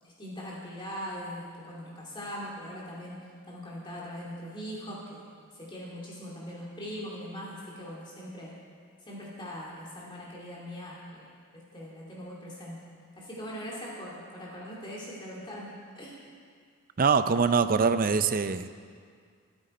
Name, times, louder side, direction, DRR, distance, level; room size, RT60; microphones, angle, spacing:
voice 1, 0.0-5.2 5.5-8.5 9.1-12.9 13.1-16.2, equal, 20° left, -5 dB, 2.3 m, -41 dB
voice 2, 17.0-18.7, right 5 dB, 40° right, 11 dB, 0.5 m, -23 dB
25.5 x 8.9 x 4.3 m, 2.1 s
head